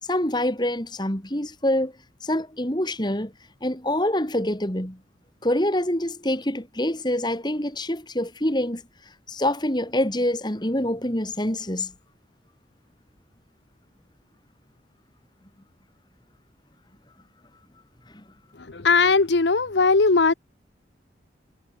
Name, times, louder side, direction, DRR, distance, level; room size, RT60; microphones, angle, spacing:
voice 1, 0.1-1.9 2.2-3.3 3.6-5.0 5.4-8.8 9.3-11.9 18.1-18.2, left 1 dB, 25° left, 3.4 m, -25 dB
voice 2, 18.7-20.3, left 4 dB, 75° left, 1.0 m, -19 dB
head